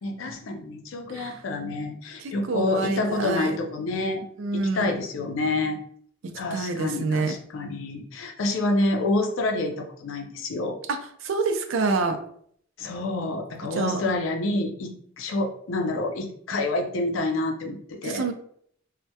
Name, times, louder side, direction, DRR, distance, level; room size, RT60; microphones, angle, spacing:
voice 1, 0.0-4.2 4.5-5.8 6.3-10.8 12.8-18.2, left 2 dB, 85° left, 3 dB, 0.5 m, -28 dB
voice 2, 2.2-3.6 4.4-5.0 6.2-7.4 10.9-12.2 13.7-14.0 18.0-18.3, right 3 dB, 75° right, 6 dB, 0.4 m, -27 dB
2.2 x 2.1 x 2.7 m, 0.63 s
head